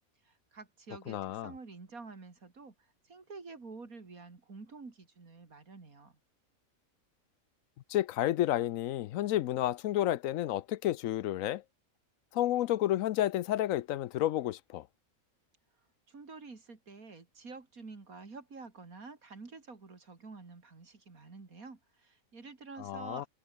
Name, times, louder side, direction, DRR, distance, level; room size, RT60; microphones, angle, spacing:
voice 1, 0.3-6.2 16.1-23.3, right 4 dB, 80° right, 3.5 m, -49 dB
voice 2, 1.1-1.5 7.9-11.6 12.3-14.9 22.8-23.3, left 13 dB, 75° left, 1.0 m, -31 dB
omnidirectional pair, 1.5 m